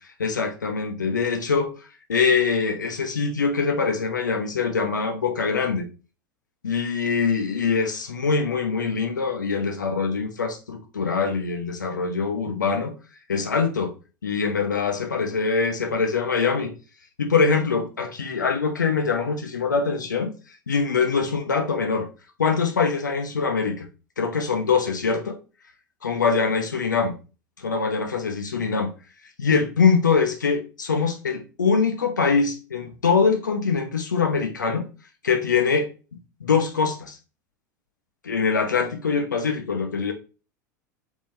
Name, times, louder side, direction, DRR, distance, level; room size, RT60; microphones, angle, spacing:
voice 1, 0.2-1.7 2.1-5.9 6.6-12.9 13.3-13.9 14.2-16.7 17.2-20.3 20.7-22.1 22.4-23.9 24.2-25.4 26.0-27.2 27.6-28.9 29.4-34.9 35.2-35.9 36.4-37.2 38.2-40.1, left 5 dB, 75° left, 0.8 m, -23 dB
4.1 x 3.7 x 3.1 m
figure-of-eight pair, 80°, 10 cm